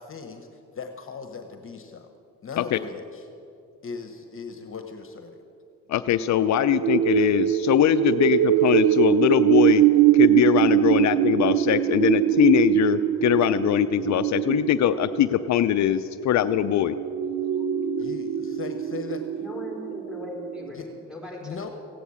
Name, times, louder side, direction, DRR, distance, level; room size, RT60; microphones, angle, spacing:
voice 1, 0.0-2.1 2.4-3.3 3.8-5.4 18.0-19.4 20.7-20.9 21.4-21.7, left 5 dB, 45° left, 6 dB, 1.2 m, -38 dB
voice 2, 5.9-9.8 10.1-17.0, left 11 dB, 65° left, 11 dB, 0.5 m, -22 dB
sound 1, 6.4-20.7, right 12 dB, 75° right, 0.6 m, -23 dB
voice 3, 19.4-21.6, left 2 dB, 5° right, 0 dB, 4.5 m, -39 dB
15.5 x 9.1 x 8.6 m, 2.5 s
cardioid pair, 90°, 30 cm